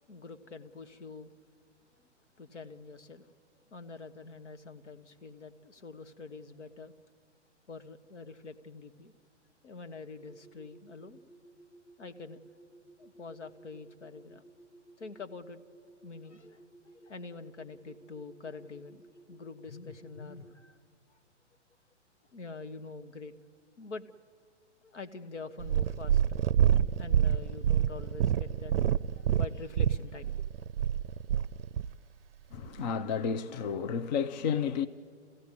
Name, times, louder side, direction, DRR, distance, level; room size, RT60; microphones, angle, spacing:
voice 1, 0.0-1.3 1.9-2.1 2.3-3.3 3.7-6.9 7.7-9.1 9.6-11.2 12.0-12.4 13.0-14.4 15.0-15.6 16.0-20.8 21.1-21.2 22.3-23.3 23.8-24.1 24.8-26.4 26.9-30.4, left 4 dB, 75° left, 1.5 m, -46 dB
sound 1, 10.2-20.5, right 2 dB, 25° right, 0.8 m, -57 dB
Purr, 25.6-31.9 32.7-32.8, right 9 dB, 55° right, 0.6 m, -27 dB
voice 2, 32.5-34.9, left 7 dB, 40° left, 0.7 m, -31 dB
28.5 x 15.5 x 9.8 m
figure-of-eight pair, 125°, 36 cm